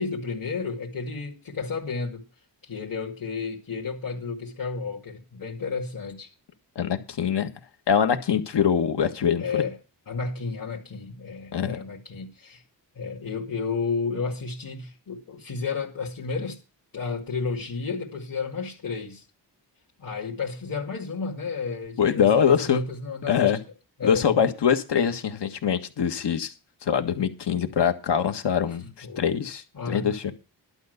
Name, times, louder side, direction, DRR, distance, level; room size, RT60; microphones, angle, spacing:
voice 1, 0.0-2.2 2.6-6.3 9.4-9.8 10.1-12.6 13.0-16.6 16.9-19.2 20.0-23.6 24.0-24.4 29.0-29.3 29.7-30.3, left 4 dB, 50° left, 2.3 m, -32 dB
voice 2, 6.7-7.5 7.9-9.6 11.5-11.8 22.0-22.8 23.3-23.6 24.0-26.5 26.8-30.3, left 8 dB, 75° left, 1.6 m, -23 dB
11.5 x 5.5 x 8.0 m
cardioid pair, 90°, 42 cm